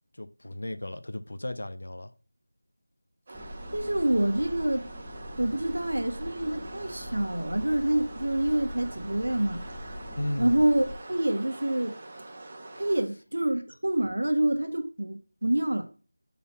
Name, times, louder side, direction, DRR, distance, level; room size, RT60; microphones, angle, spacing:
voice 1, 0.1-2.1 10.2-10.6, left 1 dB, 65° left, 0.7 m, -35 dB
sound 1, 3.3-10.9, equal, ahead, 1.0 m, -42 dB
sound 2, 3.3-13.0, right 2 dB, 30° right, 1.1 m, -44 dB
voice 2, 3.7-4.8 5.4-9.6 10.4-11.9 12.8-15.9, right 1 dB, 85° right, 1.4 m, -27 dB
5.8 x 4.2 x 5.5 m
figure-of-eight pair, 175°, 0 cm